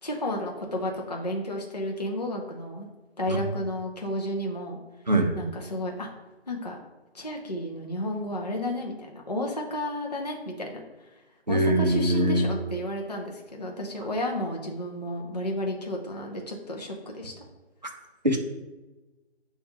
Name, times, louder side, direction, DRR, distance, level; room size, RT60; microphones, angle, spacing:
voice 1, 0.0-2.9 3.2-4.8 5.3-6.1 6.5-6.8 7.1-11.2 11.5-17.4, left 1 dB, 40° left, 0 dB, 0.4 m, -32 dB
voice 2, 11.5-12.5 18.2-18.4, right 1 dB, 40° right, 3 dB, 0.4 m, -22 dB
6.5 x 2.3 x 2.7 m, 1.1 s
figure-of-eight pair, 175°, 33 cm